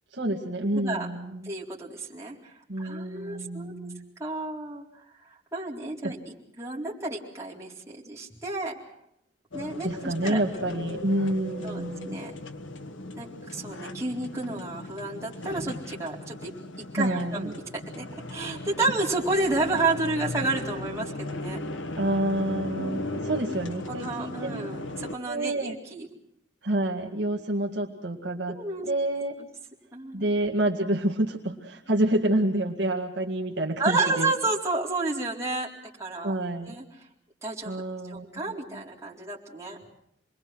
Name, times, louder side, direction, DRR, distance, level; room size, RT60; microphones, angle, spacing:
voice 1, 0.1-1.5 2.7-4.1 6.0-6.1 9.8-12.2 17.0-17.5 22.0-24.7 25.3-25.8 26.6-29.4 30.1-34.3 36.2-36.7 37.6-38.4 38.7-38.8, right 1 dB, 60° right, 1 dB, 2.0 m, -28 dB
voice 2, 0.7-1.1 1.4-3.9 4.2-8.8 9.5-11.0 11.6-12.3 13.1-16.5 16.8-21.6 22.8-23.2 23.9-26.1 28.5-28.9 29.9-30.2 33.8-35.7 36.0-36.3 36.7-36.8 37.4-37.8 38.1-39.8, right 3 dB, 15° right, -4 dB, 4.0 m, -31 dB
sound 1, 9.5-25.1, left 1 dB, 80° left, 1.5 m, -37 dB
28.0 x 21.5 x 6.2 m, 0.74 s
head